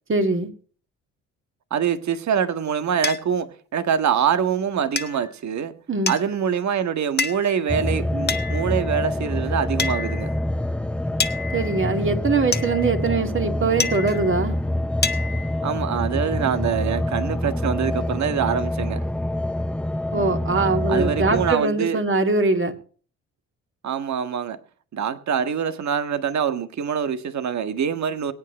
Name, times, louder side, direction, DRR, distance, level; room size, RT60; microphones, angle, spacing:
voice 1, 0.1-0.5 5.9-6.1 11.5-14.6 20.1-22.7, right 3 dB, 35° right, 2.9 m, -22 dB
voice 2, 1.7-5.7 6.1-10.3 15.6-19.1 20.9-22.0 23.8-24.6 24.9-28.3, right 8 dB, 55° right, 1.6 m, -24 dB
sound 1, 3.0-3.2 5.0-5.3 6.1-6.5 7.2-7.6 8.3-8.9 9.8-10.4 11.2-12.0 12.5-13.1 13.8-14.4 15.0-15.6, left 4 dB, 30° left, 1.4 m, -28 dB
sound 2, 7.7-21.6, left 1 dB, 5° left, 0.5 m, -26 dB
23.0 x 9.1 x 3.2 m
supercardioid pair, 60°, 34 cm